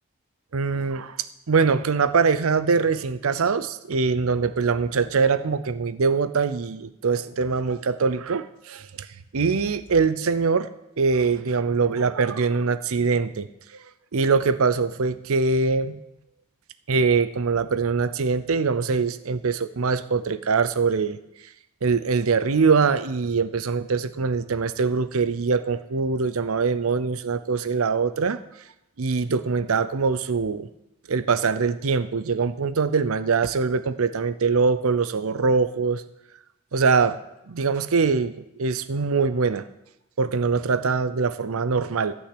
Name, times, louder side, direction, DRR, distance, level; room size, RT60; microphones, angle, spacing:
voice 1, 0.5-1.2 1.5-9.1 9.3-10.7 11.0-13.5 14.1-16.0 16.9-21.2 21.8-28.4 29.0-30.7 31.1-36.0 36.7-37.2 37.5-38.3 38.6-39.6 40.2-42.1, right 5 dB, 75° right, 13 dB, 0.6 m, -23 dB
14.5 x 6.3 x 10.0 m, 0.86 s
head